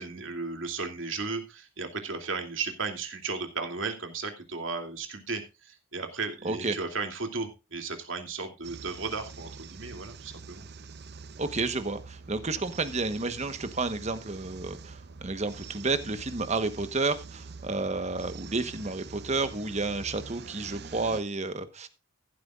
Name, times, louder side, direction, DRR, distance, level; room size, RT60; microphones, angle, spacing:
voice 1, 0.0-10.6, right 4 dB, 75° right, 5 dB, 2.6 m, -35 dB
sound 1, 8.6-21.2, right 4 dB, 55° right, 0.7 m, -45 dB
voice 2, 11.4-21.9, right 3 dB, 35° right, 11 dB, 1.1 m, -31 dB
15.0 x 12.0 x 2.4 m, 0.27 s
head